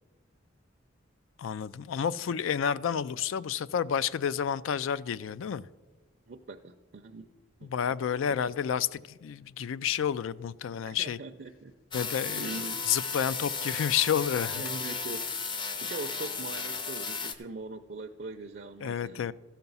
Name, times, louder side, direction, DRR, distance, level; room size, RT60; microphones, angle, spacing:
voice 1, 1.4-5.6 7.6-11.2 11.9-12.6 12.9-14.6 18.8-19.3, left 8 dB, 80° left, 0.3 m, -30 dB
voice 2, 6.3-7.3 7.6-7.7 8.3-8.4 10.9-11.7 12.4-12.9 14.5-15.3 15.8-19.3, right 3 dB, 50° right, 0.5 m, -41 dB
sound 1, 11.9-17.3, left 5 dB, 25° left, 0.5 m, -34 dB
14.0 x 5.9 x 5.4 m
head